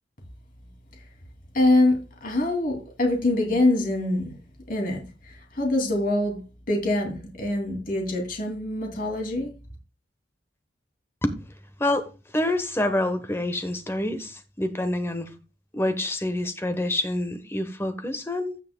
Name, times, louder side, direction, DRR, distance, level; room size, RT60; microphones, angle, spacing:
voice 1, 1.5-4.3 4.7-5.0 5.5-6.4 6.7-9.5, left 2 dB, 50° left, 2.6 m, -24 dB
voice 2, 12.3-15.3 15.7-18.6, left 1 dB, 15° left, 1.0 m, -27 dB
16.0 x 5.7 x 2.2 m
head